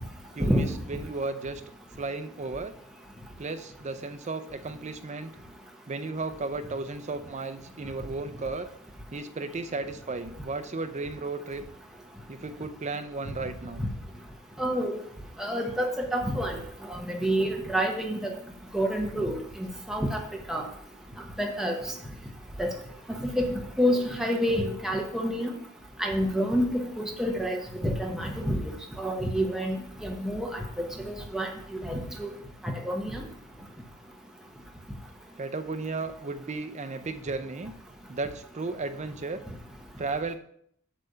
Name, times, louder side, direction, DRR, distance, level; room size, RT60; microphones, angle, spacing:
voice 1, 0.4-1.6 2.0-2.7 3.4-5.3 5.9-8.7 9.1-11.6 12.3-13.8 35.4-37.7 38.1-39.4 40.0-40.3, right 3 dB, 35° right, 10 dB, 0.5 m, -34 dB
voice 2, 14.6-15.0 15.4-16.6 16.9-18.3 18.7-19.3 19.9-20.2 20.5-20.6 21.4-21.8 22.6-22.7 23.2-25.5 26.0-30.5 30.8-31.5 31.8-32.3 32.6-33.2, equal, ahead, 0 dB, 1.0 m, -28 dB
8.3 x 3.3 x 6.6 m, 0.67 s
head